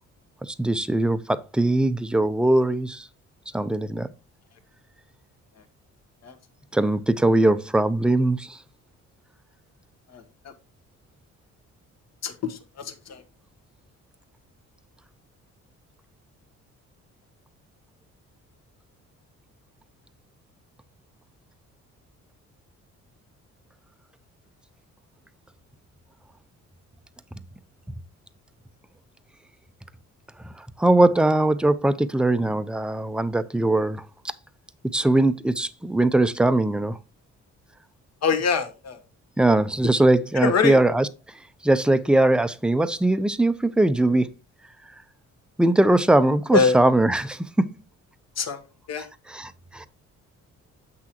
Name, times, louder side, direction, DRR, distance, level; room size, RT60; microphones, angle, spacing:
voice 1, 0.4-3.1 3.5-4.1 6.7-8.6 30.6-34.0 34.9-37.0 39.4-41.1 41.6-44.3 45.6-47.7 49.0-49.9, right 1 dB, 5° right, 0.5 m, -21 dB
voice 2, 12.2-12.6 13.1-13.2 38.2-39.0 40.4-40.8 46.5-46.7 48.4-48.6 48.9-49.0, left 5 dB, 60° left, 1.3 m, -22 dB
7.5 x 6.1 x 2.9 m
cardioid pair, 90°, 30 cm